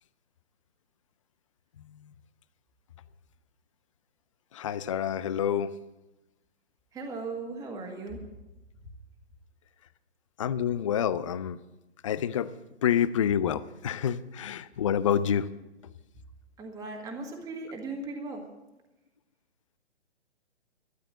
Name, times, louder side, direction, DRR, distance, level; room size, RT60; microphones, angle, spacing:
voice 1, 4.5-5.7 10.4-11.6 12.0-12.5 12.8-15.5, left 9 dB, 30° left, 16 dB, 0.4 m, -27 dB
voice 2, 6.9-8.2 16.6-18.5, right 3 dB, 10° right, 1 dB, 1.7 m, -37 dB
13.0 x 11.0 x 7.8 m, 1.0 s
figure-of-eight pair, 135°, 35 cm